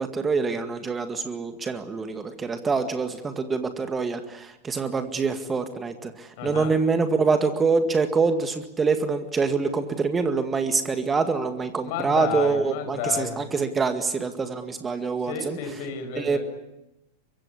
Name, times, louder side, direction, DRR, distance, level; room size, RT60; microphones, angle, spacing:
voice 1, 0.0-15.6 16.2-16.4, right 4 dB, 15° right, 8 dB, 2.0 m, -25 dB
voice 2, 6.4-6.8 11.8-13.4 15.2-16.4, left 7 dB, 50° left, 7 dB, 6.2 m, -31 dB
24.0 x 23.5 x 9.8 m, 0.91 s
figure-of-eight pair, 90°, 0 cm